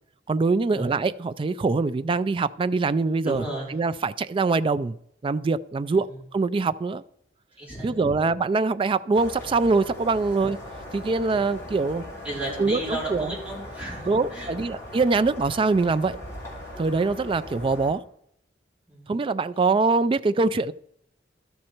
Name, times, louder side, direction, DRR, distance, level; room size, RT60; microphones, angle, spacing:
voice 1, 0.3-3.4 3.7-5.0 5.2-7.0 7.8-10.6 10.9-12.1 12.6-13.3 14.1-16.2 16.8-18.0 19.1-20.7, right 3 dB, 30° right, 0.3 m, -23 dB
voice 2, 3.2-3.7 6.1-6.2 7.6-8.1 12.2-14.5 18.9-19.2, right 1 dB, 10° right, 3.7 m, -34 dB
sound 1, 9.1-17.9, left 1 dB, 15° left, 3.2 m, -39 dB
12.5 x 6.4 x 4.4 m
head